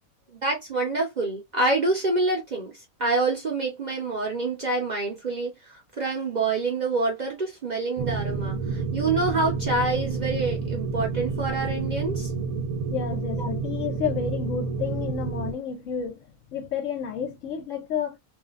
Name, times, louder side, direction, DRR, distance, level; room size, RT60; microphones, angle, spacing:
voice 1, 0.3-12.3 13.4-13.5, right 3 dB, 40° right, 0.7 m, -27 dB
sound 1, 8.0-15.5, right 4 dB, 80° right, 1.0 m, -29 dB
voice 2, 12.9-16.3 16.5-18.2, left 7 dB, 70° left, 0.9 m, -31 dB
2.6 x 2.3 x 2.3 m
omnidirectional pair, 1.5 m